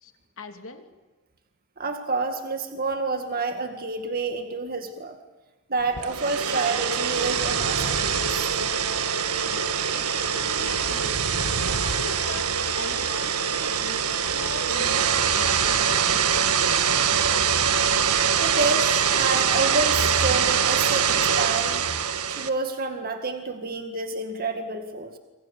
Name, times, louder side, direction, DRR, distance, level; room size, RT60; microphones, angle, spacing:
voice 1, 0.4-0.8 9.9-10.1 10.5-16.6, left 3 dB, 65° left, 5 dB, 3.0 m, -40 dB
voice 2, 1.8-5.2 5.7-8.5 16.8-16.9 18.4-21.8 22.3-25.2, right 3 dB, 45° right, 5 dB, 2.0 m, -29 dB
sound 1, 5.9-22.5, right 7 dB, 85° right, 1.7 m, -23 dB
28.5 x 25.5 x 7.2 m, 1.2 s
head